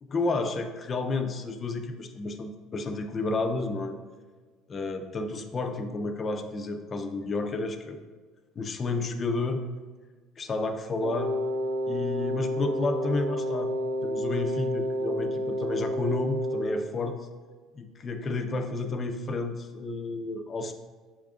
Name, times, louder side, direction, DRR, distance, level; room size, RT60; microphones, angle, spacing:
voice 1, 0.0-4.0 4.7-8.0 8.6-9.6 10.4-11.3 11.9-13.7 14.0-17.3 17.7-20.7, left 3 dB, 25° left, 6 dB, 0.3 m, -31 dB
Wind instrument woodwind instrument, 11.0-16.7, equal, 60° right, 0.7 m, -30 dB
5.6 x 2.4 x 3.5 m, 1.4 s
cardioid pair, 140°, 0 cm